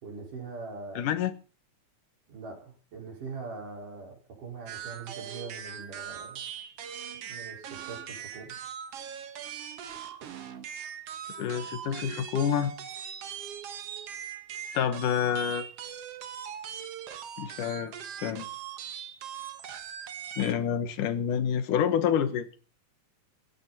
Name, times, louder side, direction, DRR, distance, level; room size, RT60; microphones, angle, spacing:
voice 1, 0.0-1.1 2.3-6.4 7.2-8.5, right 4 dB, 85° right, 6.7 m, -42 dB
voice 2, 1.0-1.3 11.4-12.7 14.7-15.7 17.4-17.9 18.2-18.5 20.4-22.5, left 8 dB, 80° left, 3.0 m, -28 dB
sound 1, 4.7-20.5, right 9 dB, 55° right, 2.1 m, -40 dB
17.5 x 15.5 x 4.2 m
omnidirectional pair, 3.6 m